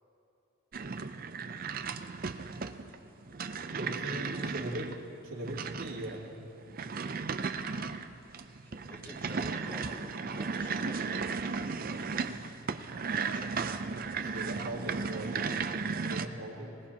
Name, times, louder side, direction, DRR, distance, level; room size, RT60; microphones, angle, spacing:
sound 1, 0.7-16.3, right 5 dB, 40° right, 0.5 m, -35 dB
voice 1, 3.7-5.0 5.2-6.2 14.2-16.8, right 1 dB, 70° right, -5 dB, 2.8 m, -40 dB
voice 2, 8.6-11.2 13.2-13.8, equal, 10° left, -4 dB, 2.1 m, -49 dB
20.5 x 19.5 x 2.9 m, 2.9 s
head